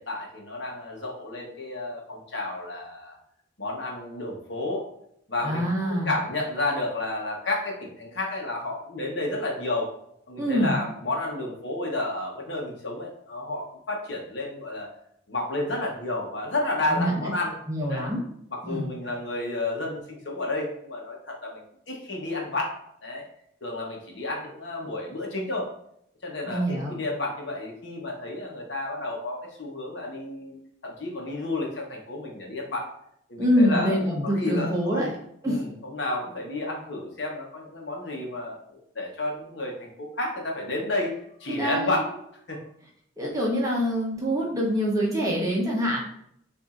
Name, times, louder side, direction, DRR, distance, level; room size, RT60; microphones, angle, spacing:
voice 1, 0.0-3.2 3.6-4.9 5.3-9.9 10.3-14.9 15.3-17.6 17.9-18.1 18.5-23.2 23.6-25.7 26.2-30.6 30.8-32.9 33.3-35.1 35.4-42.1 42.5-42.6, left 2 dB, 60° left, 0 dB, 1.0 m, -31 dB
voice 2, 5.4-6.1 10.4-10.8 16.9-17.3 17.7-18.2 18.6-18.9 26.5-27.0 33.4-35.1 35.4-35.6 41.5-42.0 43.2-46.0, equal, 15° right, -3 dB, 0.9 m, -25 dB
6.9 x 2.6 x 2.4 m, 0.71 s
head